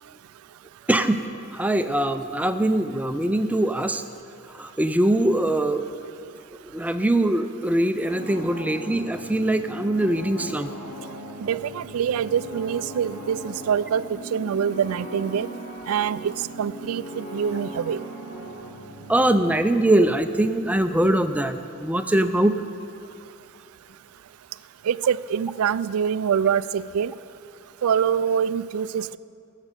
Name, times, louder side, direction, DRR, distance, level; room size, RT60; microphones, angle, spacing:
voice 1, 0.9-1.2 1.5-4.0 4.6-5.8 6.7-10.7 19.1-22.6, right 1 dB, 5° right, 9 dB, 0.4 m, -22 dB
sound 1, 8.0-19.5, right 1 dB, 70° left, 2.7 m, -38 dB
voice 2, 11.4-15.5 15.9-18.0 24.9-27.1 27.8-29.2, right 8 dB, 85° right, 17 dB, 0.3 m, -25 dB
16.5 x 7.4 x 6.7 m, 2.6 s
head